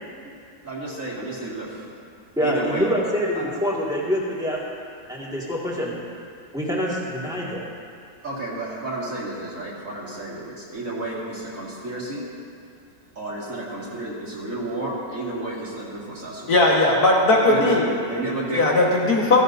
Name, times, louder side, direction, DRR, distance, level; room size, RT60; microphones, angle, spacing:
voice 1, 0.6-1.8 2.4-2.9 3.3-3.4 8.2-12.2 13.2-16.6 17.3-18.6 19.3-19.4, right 2 dB, 45° right, -6 dB, 2.5 m, -31 dB
voice 2, 2.4-4.6 5.1-6.1 6.5-7.6, equal, ahead, -5 dB, 1.8 m, -25 dB
voice 3, 16.5-17.8 18.5-19.4, left 2 dB, 60° left, -3 dB, 2.0 m, -18 dB
15.5 x 15.0 x 2.7 m, 2.3 s
omnidirectional pair, 1.9 m